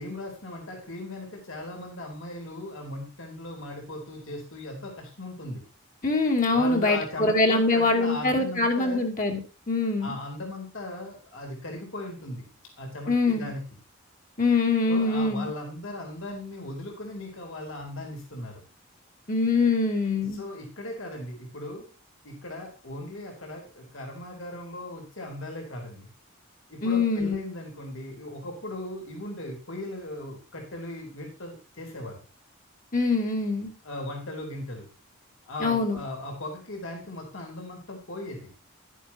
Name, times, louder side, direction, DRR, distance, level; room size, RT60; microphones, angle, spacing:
voice 1, 0.0-5.6 6.5-9.0 10.0-12.5 12.8-13.6 14.9-18.6 20.2-21.9 22.2-26.1 26.7-32.2 33.8-34.9 35.4-38.5, left 1 dB, 65° left, 1 dB, 4.0 m, -38 dB
voice 2, 6.0-9.4 9.7-10.2 13.1-13.5 14.4-15.5 19.3-20.4 26.8-27.3 32.9-33.7 35.6-36.0, left 3 dB, 35° left, 2 dB, 2.6 m, -24 dB
12.0 x 11.0 x 2.9 m, 0.34 s
head